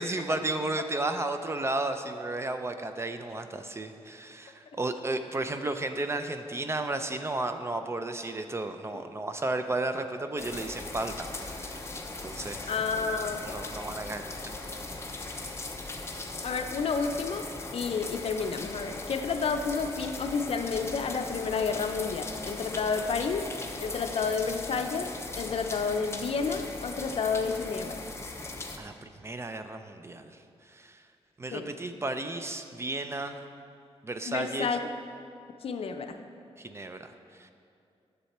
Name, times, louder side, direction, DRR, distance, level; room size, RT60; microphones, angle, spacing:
voice 1, 0.0-11.8 12.2-12.7 13.4-14.6 28.8-30.4 30.7-31.0 31.4-33.5 34.0-34.7 36.6-37.1 37.4-37.5, right 2 dB, 25° right, 8 dB, 0.4 m, -33 dB
sound 1, 10.4-28.8, left 2 dB, 25° left, 0.7 m, -39 dB
voice 2, 12.7-13.6 16.4-23.5 23.8-25.1 25.4-28.0 31.5-31.7 34.3-34.8 35.6-36.2, left 5 dB, 60° left, 6 dB, 0.6 m, -30 dB
10.5 x 6.8 x 4.3 m, 2.4 s
wide cardioid pair, 125°, 11 cm